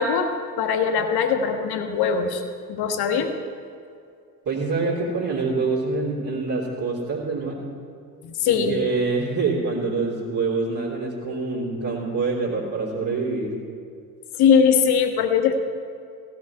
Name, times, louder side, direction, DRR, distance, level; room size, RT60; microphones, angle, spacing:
voice 1, 0.0-2.4 2.7-3.3 8.2-8.8 14.4-15.6, left 6 dB, 50° left, 7 dB, 1.4 m, -21 dB
voice 2, 4.4-7.6 8.4-13.6, right 3 dB, 35° right, -7 dB, 2.9 m, -26 dB
16.0 x 5.9 x 9.4 m, 2.4 s
figure-of-eight pair, 50°, 50 cm